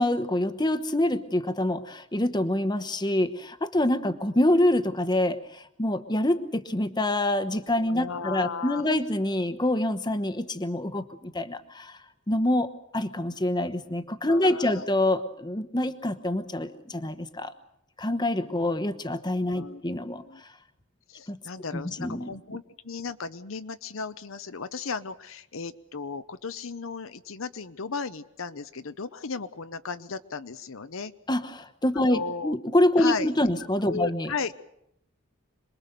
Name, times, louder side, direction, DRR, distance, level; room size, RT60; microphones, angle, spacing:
voice 1, 0.0-12.0 12.3-17.5 18.0-20.2 21.3-21.4 21.7-22.3 31.3-34.3, left 1 dB, 20° left, 10 dB, 1.1 m, -26 dB
voice 2, 7.7-8.9 14.3-14.8 18.4-18.7 19.0-19.2 19.5-19.9 20.3-20.4 21.1-31.1 32.1-32.6 33.0-33.3 33.9-34.6, left 5 dB, 70° left, 11 dB, 0.8 m, -35 dB
26.5 x 21.5 x 6.8 m, 0.79 s
head